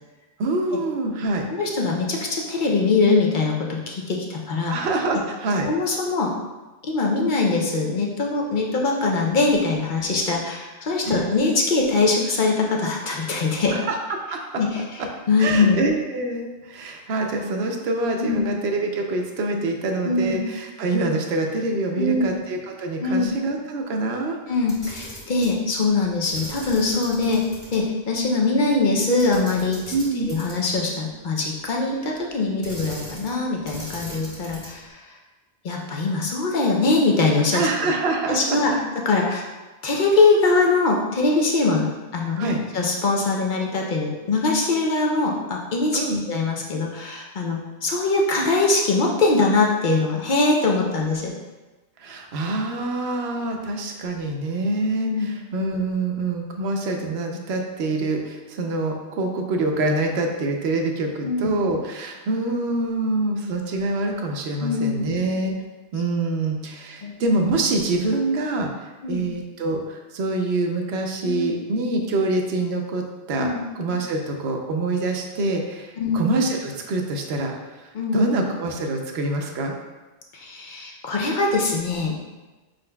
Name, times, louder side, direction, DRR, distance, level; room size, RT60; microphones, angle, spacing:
voice 1, 0.4-1.5 4.7-5.7 11.0-11.3 13.7-14.0 14.3-14.4 15.4-24.4 29.9-30.3 37.5-38.6 42.4-42.6 45.9-46.2 52.0-65.6 65.9-73.5 73.7-77.5 78.1-79.7, right 2 dB, 85° right, 2 dB, 0.9 m, -25 dB
voice 2, 1.5-4.8 5.1-5.2 5.7-6.3 6.8-13.8 14.6-15.8 18.2-18.4 20.0-20.4 21.9-22.3 23.0-23.3 24.5-35.0 35.6-37.7 38.3-39.4 39.8-46.0 46.3-51.4 55.0-55.3 61.2-61.5 64.6-65.0 67.0-67.1 69.0-69.2 71.2-71.5 73.3-73.6 76.0-76.2 77.9-78.2 80.3-82.1, left 3 dB, 55° left, -1 dB, 0.7 m, -22 dB
Camera, 24.6-25.6 26.3-27.8 28.1-28.2 29.2-30.8 32.6-33.4 33.6-34.9, equal, 30° left, 1.5 m, -39 dB
5.0 x 3.9 x 2.2 m, 1.2 s
omnidirectional pair, 1.0 m